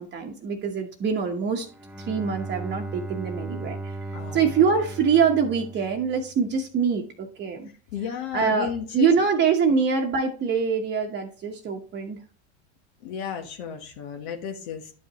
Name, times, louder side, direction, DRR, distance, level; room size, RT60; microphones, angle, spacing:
voice 1, 0.0-1.7 2.0-7.7 8.3-12.2, right 6 dB, 30° right, 2 dB, 1.1 m, -24 dB
Bowed string instrument, 1.6-6.6, right 2 dB, 5° right, 0.5 m, -37 dB
voice 2, 4.1-4.5 7.9-9.1 13.0-14.9, left 7 dB, 65° left, 4 dB, 1.3 m, -33 dB
11.0 x 5.3 x 3.0 m, 0.39 s
supercardioid pair, 105°, 34 cm